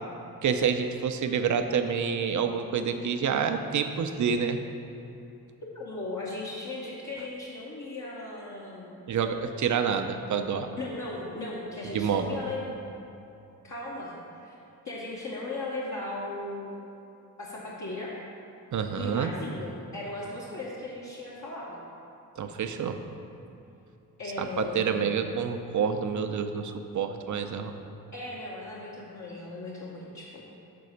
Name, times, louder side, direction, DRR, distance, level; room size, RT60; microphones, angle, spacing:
voice 1, 0.4-4.6 9.1-10.7 11.9-12.4 18.7-19.3 22.4-23.0 24.4-27.7, right 6 dB, 50° right, 7 dB, 0.6 m, -28 dB
voice 2, 5.7-8.9 10.8-12.8 13.6-14.1 14.4-14.5 14.8-16.8 17.4-18.1 19.0-21.8 24.2-25.2 28.1-30.4, left 2 dB, 45° left, -7 dB, 1.3 m, -37 dB
6.9 x 4.1 x 6.5 m, 2.8 s
cardioid pair, 65°, 38 cm